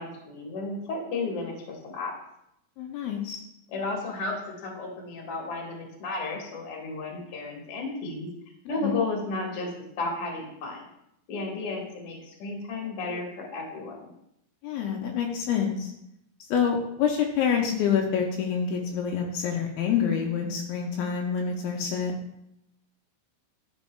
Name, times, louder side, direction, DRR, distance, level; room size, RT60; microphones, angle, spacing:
voice 1, 0.0-2.1 3.7-8.3 8.7-9.7 10.0-10.8 11.3-14.0, left 3 dB, 55° left, -1 dB, 1.8 m, -33 dB
voice 2, 2.8-3.4 8.8-9.0 14.6-15.9 16.5-22.1, left 7 dB, 80° left, 1 dB, 2.4 m, -27 dB
11.5 x 5.3 x 2.2 m, 0.78 s
omnidirectional pair, 4.6 m